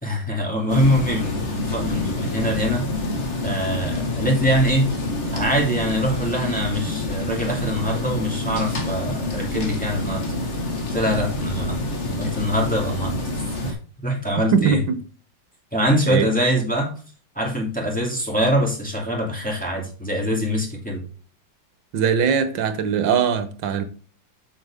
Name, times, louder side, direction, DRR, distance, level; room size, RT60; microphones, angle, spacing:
voice 1, 0.0-2.9 3.4-4.9 5.3-10.2 10.9-11.8 12.0-13.2 13.6-13.8 14.0-14.8 15.7-16.9 17.3-21.0, equal, 5° left, 2.7 m, -23 dB
sound 1, 0.7-13.7, left 2 dB, 35° left, 1.7 m, -27 dB
voice 2, 14.5-15.0 16.1-16.3 21.9-23.8, right 7 dB, 70° right, 1.7 m, -21 dB
7.8 x 7.0 x 3.6 m
omnidirectional pair, 2.2 m